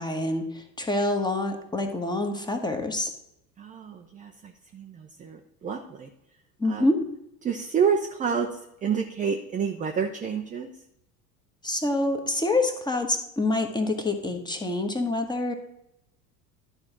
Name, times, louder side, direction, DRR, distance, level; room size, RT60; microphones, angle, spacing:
voice 1, 0.0-3.1 6.6-7.0 11.6-15.5, left 2 dB, 10° left, 5 dB, 1.2 m, -26 dB
voice 2, 3.6-6.1 6.7-6.8 7.4-8.5 8.8-10.7, right 6 dB, 15° right, 4 dB, 0.6 m, -28 dB
11.5 x 4.4 x 6.0 m, 0.83 s
figure-of-eight pair, 75°, 49 cm